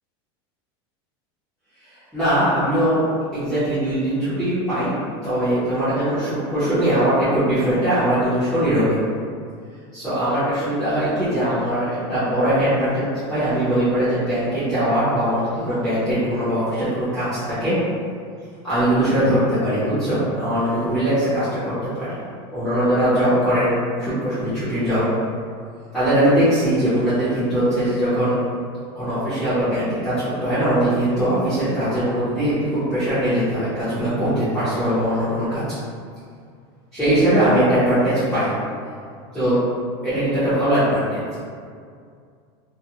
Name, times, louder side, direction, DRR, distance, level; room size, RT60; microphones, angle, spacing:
voice 1, 1.8-3.0 3.3-4.9 5.2-9.0 9.9-13.0 13.3-17.8 18.6-22.2 22.5-25.1 25.9-28.4 29.0-35.7 36.9-38.5 39.3-39.6 40.0-41.4, right 1 dB, ahead, -17 dB, 0.7 m, -21 dB
2.3 x 2.1 x 2.8 m, 2.2 s
supercardioid pair, 160°, 14 cm